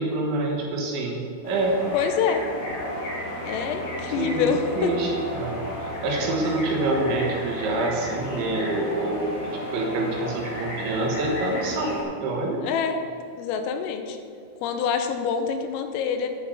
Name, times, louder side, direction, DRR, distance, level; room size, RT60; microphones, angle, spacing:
voice 1, 0.0-1.8 4.1-4.5 4.8-12.6, right 2 dB, 75° right, 0 dB, 3.2 m, -27 dB
sound 1, 1.4-12.0, equal, 50° left, 3.9 m, -33 dB
voice 2, 1.9-2.5 3.4-4.9 12.6-13.0 13.4-14.2 14.6-16.3, left 7 dB, 90° left, 7 dB, 3.3 m, -26 dB
9.6 x 5.5 x 7.0 m, 2.4 s
omnidirectional pair, 5.9 m